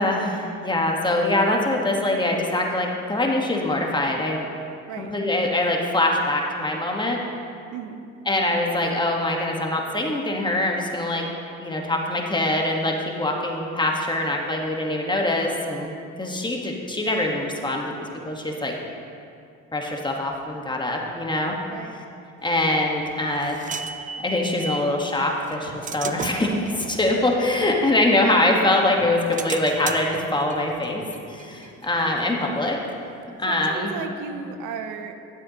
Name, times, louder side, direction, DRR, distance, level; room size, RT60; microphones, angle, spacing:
voice 1, 0.0-4.5 5.0-7.2 8.3-11.3 11.6-18.7 19.7-21.6 22.4-23.7 24.2-31.0 31.3-32.8 33.4-33.9, left 1 dB, 15° left, 0 dB, 1.3 m, -23 dB
voice 2, 7.7-8.0 21.7-22.0 33.5-35.2, right 5 dB, 85° right, 7 dB, 0.7 m, -34 dB
sound 1, 22.7-24.9 25.5-28.6 29.0-32.4, right 6 dB, 25° right, 0.4 m, -36 dB
12.5 x 7.6 x 2.8 m, 2.5 s
supercardioid pair, 80°, 30 cm